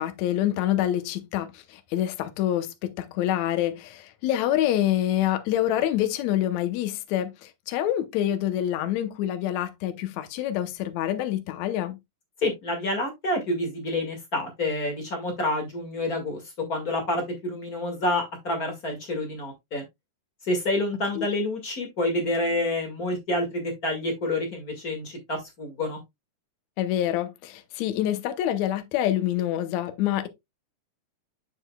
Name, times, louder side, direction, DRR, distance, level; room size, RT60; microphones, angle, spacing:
voice 1, 0.0-12.0 21.2-21.3 26.8-30.3, left 12 dB, 70° left, 2.0 m, -26 dB
voice 2, 12.4-16.4 16.7-19.8 20.5-26.0, left 1 dB, 35° left, 2.0 m, -28 dB
8.0 x 7.0 x 2.3 m
omnidirectional pair, 3.6 m